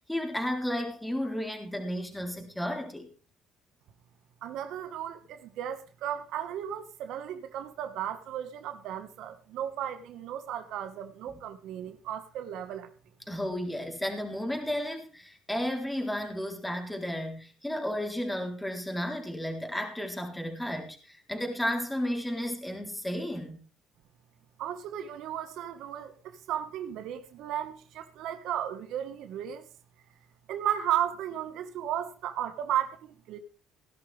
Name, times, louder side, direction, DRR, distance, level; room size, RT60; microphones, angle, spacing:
voice 1, 0.1-3.1 11.3-11.4 13.3-23.6, equal, 5° left, 3.8 m, -33 dB
voice 2, 4.4-12.9 24.6-29.6 30.5-33.4, right 10 dB, 70° right, 1.6 m, -34 dB
17.5 x 11.5 x 3.5 m
cardioid pair, 100°, 0 cm